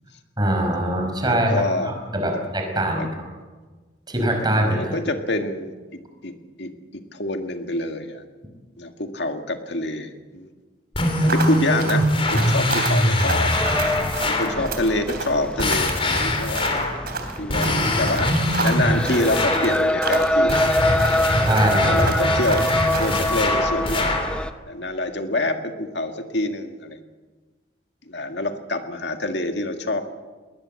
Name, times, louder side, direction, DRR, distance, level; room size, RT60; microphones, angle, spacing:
voice 1, 0.4-3.1 4.1-5.0 21.5-22.0, right 1 dB, 20° right, 3 dB, 5.1 m, -23 dB
voice 2, 1.3-2.0 2.3-2.4 3.0-3.1 4.6-5.7 6.2-6.3 6.6-8.2 8.8-10.5 11.2-13.5 14.2-16.7 17.4-18.3 18.6-21.3 21.8-22.7 23.0-24.3 24.7-27.0 28.1-30.0, left 2 dB, 65° left, 6 dB, 2.0 m, -26 dB
sound 1, 10.9-14.6 15.6-17.0 17.5-19.8 20.5-24.4, left 1 dB, 30° left, 3.3 m, -23 dB
sound 2, 11.3-23.3, right 3 dB, 55° right, 3.3 m, -31 dB
sound 3, 13.5-24.5, left 1 dB, 5° left, 0.8 m, -25 dB
21.5 x 20.0 x 7.8 m, 1.4 s
head